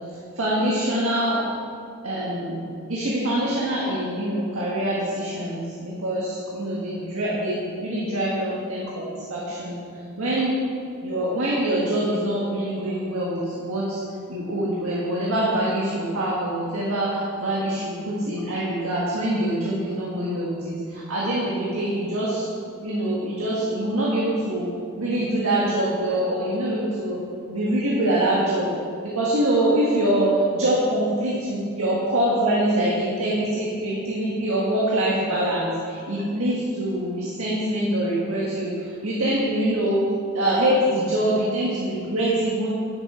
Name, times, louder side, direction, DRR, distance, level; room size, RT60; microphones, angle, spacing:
voice 1, 0.4-1.4 2.0-2.6 2.9-9.8 10.2-10.5 11.0-14.0 14.3-22.5 22.8-24.7 25.0-27.2 27.5-28.7 29.0-40.0 40.3-42.7, right 1 dB, 85° right, -6 dB, 1.6 m, -24 dB
9.8 x 7.4 x 4.4 m, 2.3 s
head